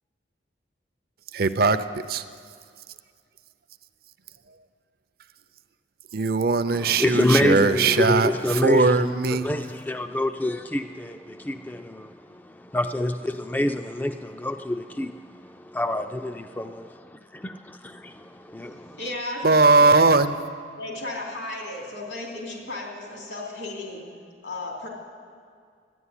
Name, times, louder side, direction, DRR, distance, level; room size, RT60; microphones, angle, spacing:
voice 1, 1.3-1.8 2.1-2.2 6.1-8.3 8.6-9.4 19.4-20.3, right 3 dB, 55° right, 0.5 m, -19 dB
voice 2, 6.7-19.0, left 1 dB, 10° left, 0.3 m, -27 dB
voice 3, 18.6-20.1 20.8-24.2 24.4-24.9, left 2 dB, 85° left, 3.1 m, -35 dB
12.5 x 10.0 x 9.8 m
head